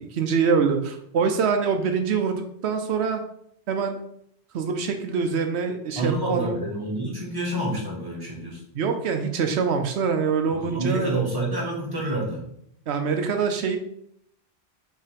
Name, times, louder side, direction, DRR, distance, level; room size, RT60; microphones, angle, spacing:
voice 1, 0.1-3.2 3.7-4.0 4.5-6.6 8.7-11.3 12.9-13.8, right 5 dB, 85° right, 6 dB, 1.0 m, -24 dB
voice 2, 6.0-8.6 10.5-12.4, right 1 dB, 20° right, -4 dB, 2.0 m, -28 dB
5.6 x 3.7 x 5.1 m, 0.70 s
omnidirectional pair, 1.1 m